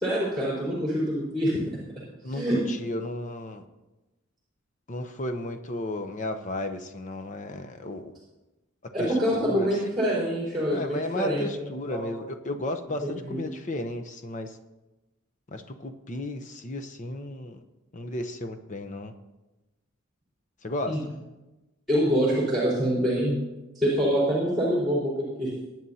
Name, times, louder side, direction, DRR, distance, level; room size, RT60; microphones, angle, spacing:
voice 1, 0.0-1.8 2.3-2.6 8.9-11.6 11.9-12.0 13.0-13.4 20.9-21.0 21.9-23.4 23.7-25.5, equal, ahead, -9 dB, 4.1 m, -25 dB
voice 2, 2.2-3.6 4.9-8.1 9.0-9.7 10.7-14.6 15.5-17.6 17.9-19.1 20.6-21.1, left 1 dB, 35° left, 6 dB, 0.8 m, -34 dB
22.0 x 9.2 x 2.8 m, 1.1 s
head